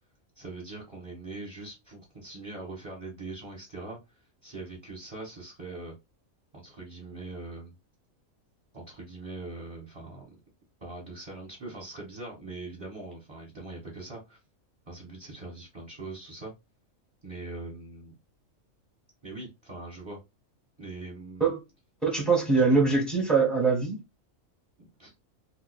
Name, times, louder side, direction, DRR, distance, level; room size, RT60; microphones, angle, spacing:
voice 1, 0.3-4.0 4.4-5.9 6.5-7.7 8.7-10.3 10.8-14.4 14.9-16.5 17.2-18.1 19.2-20.2 20.8-21.5 22.5-22.6 24.8-25.1, right 2 dB, 20° right, 1.2 m, -42 dB
voice 2, 22.0-24.0, right 4 dB, ahead, 1.0 m, -23 dB
2.8 x 2.5 x 4.1 m
omnidirectional pair, 1.4 m